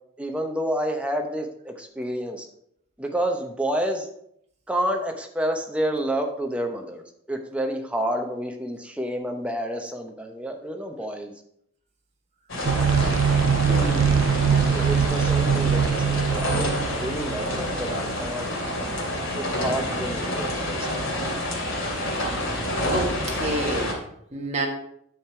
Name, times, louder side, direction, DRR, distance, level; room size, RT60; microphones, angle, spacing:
voice 1, 0.2-2.5 3.0-4.1 4.7-7.0 7.3-11.3 14.7-18.5 19.3-21.3, right 1 dB, 5° right, 3 dB, 0.9 m, -29 dB
sound 1, 12.5-23.9, left 1 dB, 70° left, 2.9 m, -28 dB
sound 2, 12.6-19.3, right 1 dB, 60° right, 1.8 m, -40 dB
sound 3, 12.6-17.9, right 7 dB, 85° right, 0.4 m, -22 dB
voice 2, 13.6-14.4 22.9-24.0 24.3-24.7, right 2 dB, 35° right, 1 dB, 1.6 m, -29 dB
9.1 x 6.6 x 4.5 m, 0.72 s
head